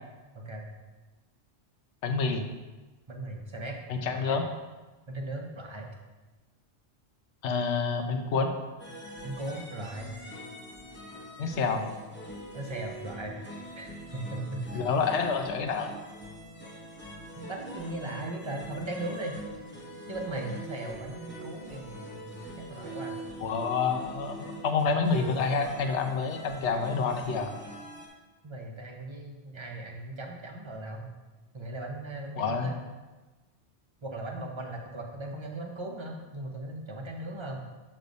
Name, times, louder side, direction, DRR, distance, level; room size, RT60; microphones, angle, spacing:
voice 1, 0.3-0.7 3.1-3.8 4.1-4.4 5.1-5.9 9.2-10.2 12.5-14.9 17.4-19.4 20.1-23.2 28.4-31.1 31.5-32.7 34.0-37.7, right 2 dB, 30° right, 1 dB, 0.7 m, -38 dB
voice 2, 2.0-2.5 3.9-4.5 7.4-8.6 11.4-11.8 14.7-15.9 23.4-27.5 32.4-32.7, left 5 dB, 85° left, 5 dB, 1.0 m, -28 dB
sound 1, 8.8-28.1, right 1 dB, 10° left, 0.8 m, -43 dB
6.7 x 3.3 x 5.1 m, 1.2 s
omnidirectional pair, 1.1 m